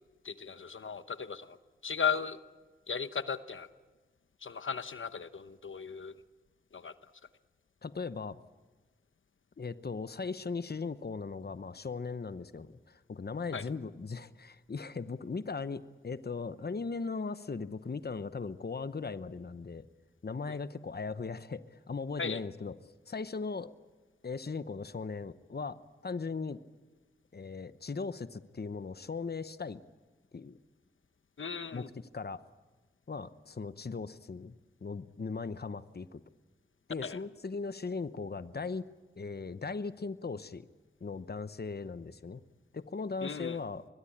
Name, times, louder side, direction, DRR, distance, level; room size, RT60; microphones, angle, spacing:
voice 1, 0.2-1.6 1.8-2.4 2.9-3.7 4.4-6.1 6.7-6.9 13.5-13.6 20.5-20.6 22.2-22.4 31.4-31.9 37.0-37.2 43.2-43.6, left 6 dB, 90° left, 11 dB, 0.9 m, -36 dB
voice 2, 7.8-8.4 9.6-19.9 20.2-22.7 23.1-23.7 24.2-25.8 26.0-26.6 27.3-29.8 30.3-30.6 31.7-32.4 33.1-34.5 34.8-36.2 36.9-38.8 39.2-40.7 41.0-42.4 42.7-43.8, left 4 dB, 55° left, 13 dB, 0.9 m, -38 dB
24.5 x 22.0 x 8.8 m, 1.2 s
wide cardioid pair, 60°, 20 cm